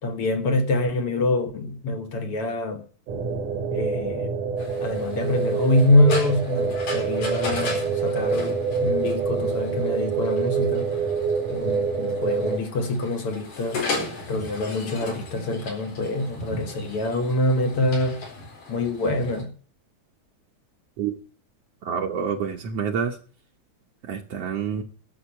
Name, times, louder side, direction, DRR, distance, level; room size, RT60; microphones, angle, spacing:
voice 1, 0.0-2.9 3.7-4.3 4.8-10.9 11.5-13.8 14.3-18.2 18.7-19.5, left 1 dB, 55° left, 1.9 m, -25 dB
sound 1, 3.1-12.6, right 5 dB, 90° right, 3.2 m, -26 dB
sound 2, 4.6-19.4, left 3 dB, 85° left, 5.7 m, -36 dB
voice 2, 21.8-23.2 24.1-24.8, right 7 dB, 65° right, 1.9 m, -27 dB
11.5 x 7.1 x 8.3 m
omnidirectional pair, 3.5 m